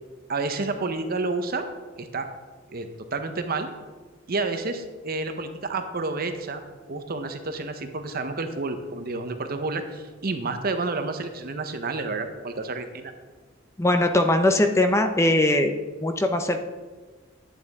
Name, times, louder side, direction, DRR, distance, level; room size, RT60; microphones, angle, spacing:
voice 1, 0.3-1.7 2.0-2.3 2.7-3.7 4.3-6.6 6.9-13.1, right 3 dB, 50° right, 7 dB, 0.8 m, -30 dB
voice 2, 13.8-15.7 16.0-16.6, left 1 dB, 15° left, 6 dB, 0.6 m, -20 dB
11.0 x 8.6 x 3.6 m, 1.3 s
head